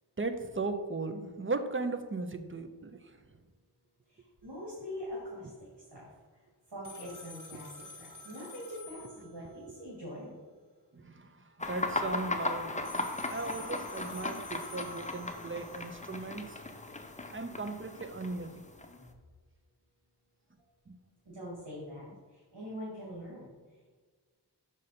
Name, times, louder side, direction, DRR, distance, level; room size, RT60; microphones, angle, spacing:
voice 1, 0.2-3.0 10.9-11.3 11.6-16.5 17.3-18.5 20.9-21.0, right 3 dB, 30° right, 8 dB, 0.6 m, -37 dB
voice 2, 4.1-6.1 6.3-10.3 21.3-23.9, equal, 80° right, -6 dB, 2.1 m, -44 dB
sound 1, 6.8-9.7 12.8-15.8, left 3 dB, 45° left, 1.4 m, -50 dB
sound 2, 11.6-19.1, left 2 dB, 15° left, 0.6 m, -37 dB
6.5 x 5.0 x 4.3 m, 1.5 s
wide cardioid pair, 45°, 42 cm